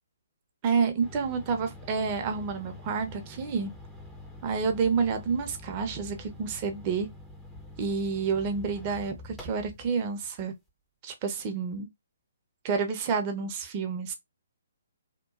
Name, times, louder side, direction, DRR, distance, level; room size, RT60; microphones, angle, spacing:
voice 1, 0.6-3.7 4.4-7.1 7.8-10.5 11.0-11.9 12.6-14.1, right 5 dB, 35° right, 0.7 m, -29 dB
sound 1, 1.0-9.9, left 2 dB, 5° left, 0.6 m, -46 dB
2.9 x 2.2 x 2.3 m
figure-of-eight pair, 135°, 0 cm